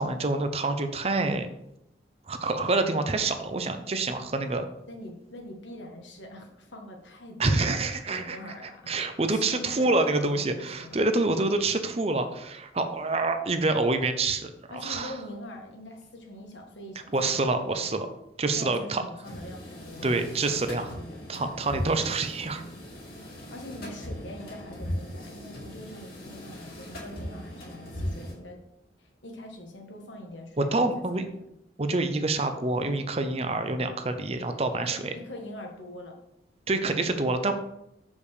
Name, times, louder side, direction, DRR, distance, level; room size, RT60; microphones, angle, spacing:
voice 1, 0.0-1.5 2.3-4.6 7.4-8.4 8.9-15.1 17.1-18.1 18.4-19.0 20.0-20.9 21.3-22.6 30.6-31.3 31.8-35.1 36.7-37.5, right 2 dB, 35° right, 8 dB, 0.6 m, -27 dB
voice 2, 4.9-7.7 8.1-8.9 9.2-11.0 14.7-17.5 18.5-21.4 23.5-28.6 29.0-31.4 34.7-36.2, left 1 dB, 80° left, 2 dB, 1.6 m, -43 dB
sound 1, 19.2-28.3, equal, 55° left, 2.4 m, -38 dB
6.7 x 5.4 x 4.9 m, 0.82 s
head